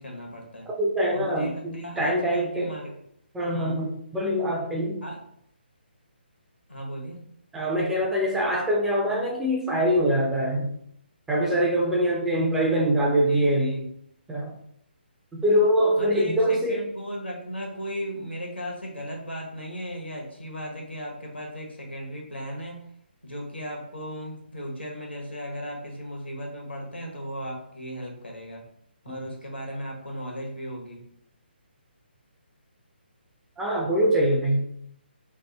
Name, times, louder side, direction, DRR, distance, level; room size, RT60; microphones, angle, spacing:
voice 1, 0.0-0.7 1.1-2.9 3.5-3.8 5.0-5.2 6.7-7.2 13.3-13.9 16.0-22.8 23.2-28.7 29.0-31.0, equal, 85° left, 0 dB, 1.3 m, -36 dB
voice 2, 0.8-2.8 3.3-5.0 7.5-10.8 11.3-13.8 14.3-14.6 15.3-16.8 29.1-29.3 33.6-34.7, equal, 5° right, -2 dB, 0.6 m, -24 dB
3.4 x 2.6 x 4.0 m, 0.70 s
figure-of-eight pair, 140°, 6 cm